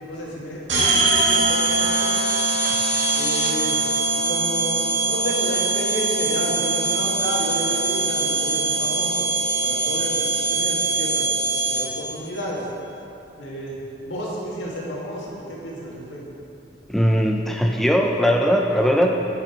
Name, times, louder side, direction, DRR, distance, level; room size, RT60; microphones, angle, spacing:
voice 1, 0.1-2.2 3.1-3.8 4.2-9.2 9.6-12.7 13.4-16.2, equal, 85° left, -4 dB, 2.0 m, -31 dB
sound 1, 0.7-12.1, right 3 dB, 80° right, 1.7 m, -22 dB
sound 2, 1.4-3.5, left 4 dB, 35° left, 0.8 m, -32 dB
voice 2, 16.9-19.1, equal, ahead, 1 dB, 0.4 m, -20 dB
8.8 x 8.0 x 4.4 m, 2.8 s
head